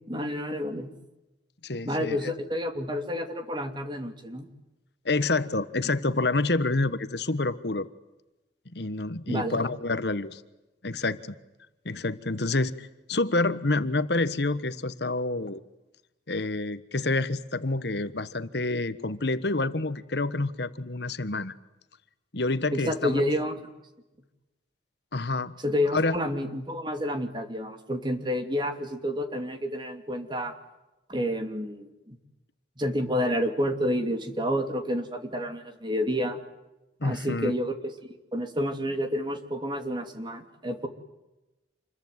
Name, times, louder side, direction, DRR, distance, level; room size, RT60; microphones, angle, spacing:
voice 1, 0.1-0.9 1.8-4.5 9.3-9.6 22.7-23.5 25.6-30.5 31.1-32.2 32.8-36.4 37.0-37.9 38.3-40.9, equal, 25° right, 7 dB, 2.8 m, -29 dB
voice 2, 1.6-2.2 5.0-7.9 8.7-10.4 10.8-11.3 11.8-15.6 16.3-21.5 22.3-23.3 25.1-25.5 25.9-26.2 37.0-37.5, left 2 dB, 60° left, 12 dB, 1.3 m, -28 dB
28.0 x 22.0 x 9.6 m, 0.99 s
head